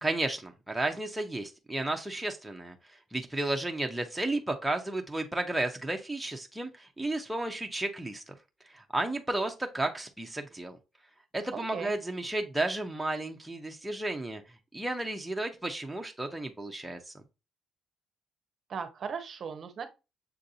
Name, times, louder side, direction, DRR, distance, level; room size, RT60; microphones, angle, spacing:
voice 1, 0.0-2.8 3.1-8.3 8.7-10.8 11.3-14.4 14.7-17.1, right 2 dB, 5° right, 0.5 m, -33 dB
voice 2, 11.5-11.9 18.7-19.9, right 6 dB, 45° right, 0.6 m, -37 dB
6.7 x 2.6 x 2.5 m
cardioid pair, 135°, 0 cm